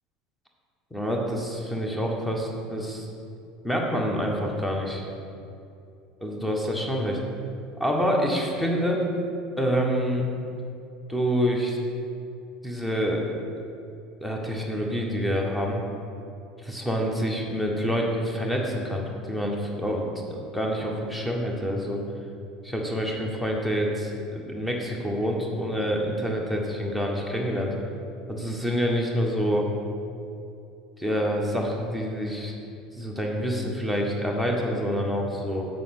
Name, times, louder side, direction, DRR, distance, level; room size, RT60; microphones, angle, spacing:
voice 1, 0.9-3.1 3.6-5.0 6.2-7.2 7.8-9.0 9.6-10.3 11.1-11.8 12.6-13.2 14.2-15.8 16.6-22.0 22.6-27.7 28.3-29.7 31.0-32.5 32.9-35.7, equal, 5° left, 0 dB, 1.5 m, -27 dB
7.6 x 5.1 x 6.7 m, 2.6 s
figure-of-eight pair, 70°, 0 cm